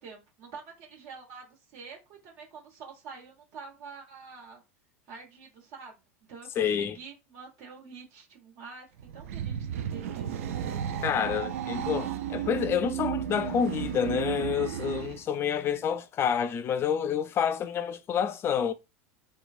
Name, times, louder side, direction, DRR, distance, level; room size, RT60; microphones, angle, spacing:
voice 1, 0.0-4.6 5.1-6.0 6.3-8.9 9.1-10.6, right 5 dB, 55° right, 1.3 m, -47 dB
voice 2, 6.6-7.0 11.0-18.7, left 8 dB, 35° left, 0.4 m, -28 dB
sound 1, 9.0-15.2, right 10 dB, 75° right, 0.4 m, -33 dB
3.0 x 2.2 x 2.5 m
hypercardioid pair, 90°, 8 cm